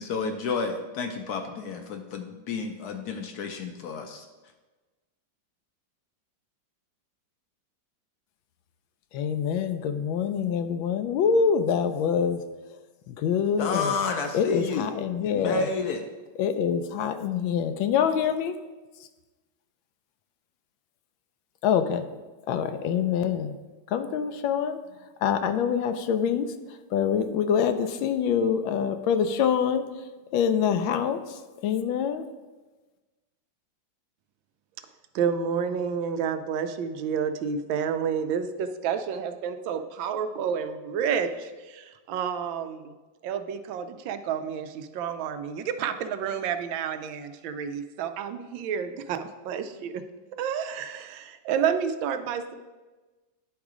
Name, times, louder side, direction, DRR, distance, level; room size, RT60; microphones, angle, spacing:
voice 1, 0.0-4.3 13.6-14.9 15.2-16.1, left 4 dB, 70° left, 5 dB, 1.0 m, -31 dB
voice 2, 9.1-12.4 13.1-13.9 14.3-15.7 16.4-18.5 21.6-22.0 22.5-23.5 23.9-24.8 25.2-26.5 26.9-29.9 30.3-32.2, left 7 dB, 85° left, 9 dB, 1.4 m, -25 dB
voice 3, 35.1-43.0 43.2-50.0 50.4-52.6, right 7 dB, 80° right, 9 dB, 1.3 m, -30 dB
10.5 x 3.7 x 4.9 m, 1.2 s
omnidirectional pair, 2.1 m